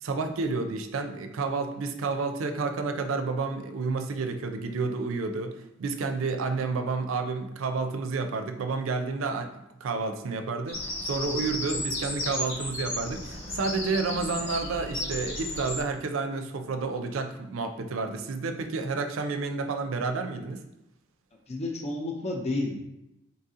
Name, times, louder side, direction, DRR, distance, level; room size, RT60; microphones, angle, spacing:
voice 1, 0.0-20.6, right 4 dB, 80° right, 7 dB, 0.4 m, -30 dB
Bird vocalization bird call bird song, 10.7-15.8, left 1 dB, 70° left, 1.1 m, -34 dB
voice 2, 21.5-22.8, left 2 dB, 35° left, 1 dB, 0.5 m, -30 dB
4.0 x 2.7 x 3.6 m, 0.88 s
head